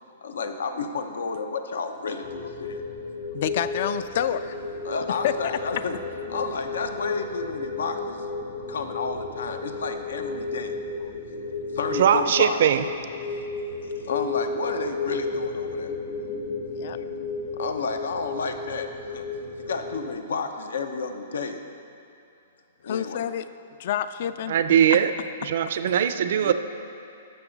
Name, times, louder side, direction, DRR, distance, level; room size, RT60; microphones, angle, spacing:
voice 1, 0.2-2.8 4.8-6.0 6.3-8.3 8.7-10.7 11.7-12.6 13.8-15.9 17.5-19.3 19.6-21.6 22.8-23.2, left 4 dB, 90° left, 7 dB, 0.7 m, -31 dB
sound 1, 2.2-20.1, left 3 dB, 60° left, 1.6 m, -33 dB
voice 2, 3.3-4.6 5.1-5.3 16.7-17.0 22.8-23.5 23.8-24.6 24.9-25.0 26.4-26.5, left 10 dB, 45° left, 13 dB, 0.3 m, -28 dB
voice 3, 11.9-12.8 24.5-25.1 25.4-26.5, right 9 dB, 55° right, 10 dB, 0.4 m, -20 dB
12.0 x 6.8 x 3.9 m, 2.6 s
hypercardioid pair, 170°, 0 cm